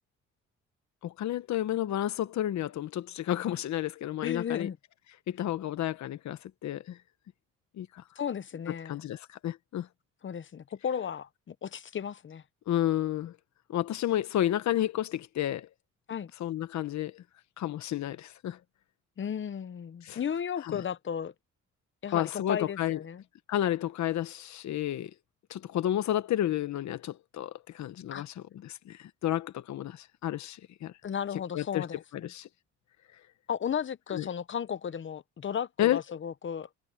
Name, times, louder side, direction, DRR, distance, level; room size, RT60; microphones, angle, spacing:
voice 1, 1.0-4.7 5.3-7.0 7.8-8.0 8.8-9.9 12.7-13.4 13.7-15.7 16.4-17.2 17.6-18.6 20.0-20.2 20.6-20.8 22.1-23.0 23.5-25.1 25.5-30.9 31.5-31.9 32.1-32.5 34.1-34.3 35.8-36.0, left 12 dB, 65° left, 1.0 m, -31 dB
voice 2, 4.2-4.8 8.2-9.0 10.2-12.4 16.1-16.3 19.2-21.3 22.0-23.2 28.1-28.2 31.0-32.3 33.5-36.7, left 8 dB, 40° left, 0.8 m, -34 dB
cardioid pair, 90°, 30 cm